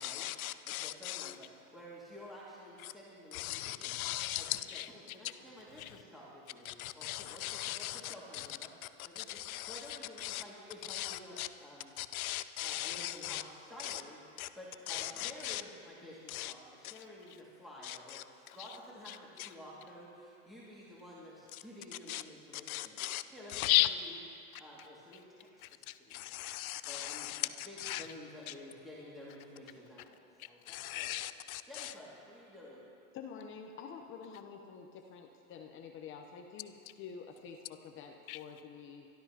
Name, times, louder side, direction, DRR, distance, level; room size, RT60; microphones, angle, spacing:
voice 1, 0.0-1.4 2.8-2.9 3.3-5.3 5.8-6.0 6.6-8.5 9.2-10.4 10.9-11.5 12.0-13.4 13.8-14.0 14.4-14.5 14.9-15.6 16.3-16.5 16.8-17.0 17.8-18.8 19.1-19.5 21.5-21.6 22.1-22.2 22.7-23.2 23.5-23.9 25.6-28.1 28.5-28.6 30.4-31.9 38.3-38.4, left 15 dB, 70° left, 0.8 m, -37 dB
voice 2, 0.6-4.0 4.4-4.5 4.7-11.9 12.6-23.0 23.3-24.1 24.6-26.3 26.8-31.1 31.7-32.8, left 1 dB, ahead, 2.2 m, -51 dB
voice 3, 33.1-39.1, left 6 dB, 25° left, 0.9 m, -48 dB
23.5 x 12.5 x 2.9 m
hypercardioid pair, 130°, 44 cm